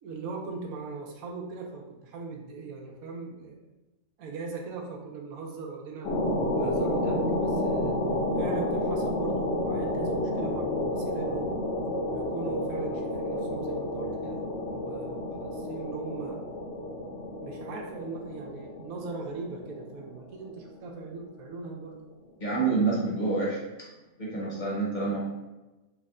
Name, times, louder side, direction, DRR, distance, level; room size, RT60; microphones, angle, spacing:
voice 1, 0.0-3.7 4.2-6.2 6.5-8.0 8.4-11.6 12.1-16.4 17.4-22.0, right 4 dB, 80° right, 0 dB, 1.0 m, -39 dB
sound 1, 6.0-21.1, left 1 dB, 65° left, 1.1 m, -30 dB
voice 2, 22.4-23.6 24.2-25.3, right 3 dB, 40° left, -6 dB, 0.8 m, -27 dB
3.3 x 2.1 x 3.6 m, 1.1 s
omnidirectional pair, 1.5 m